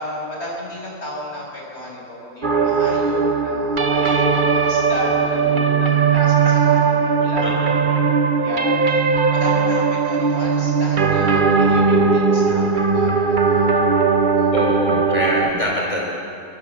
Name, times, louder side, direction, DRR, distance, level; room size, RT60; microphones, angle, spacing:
voice 1, 0.0-7.7 8.4-8.9 9.3-13.7 14.2-14.5, equal, 65° left, -3 dB, 7.6 m, -33 dB
sound 1, 2.4-15.5, right 5 dB, 45° right, 1.3 m, -18 dB
voice 2, 7.4-8.1 14.5-16.0, left 1 dB, 25° left, -2 dB, 4.3 m, -24 dB
29.5 x 23.0 x 7.5 m, 2.5 s
omnidirectional pair, 1.2 m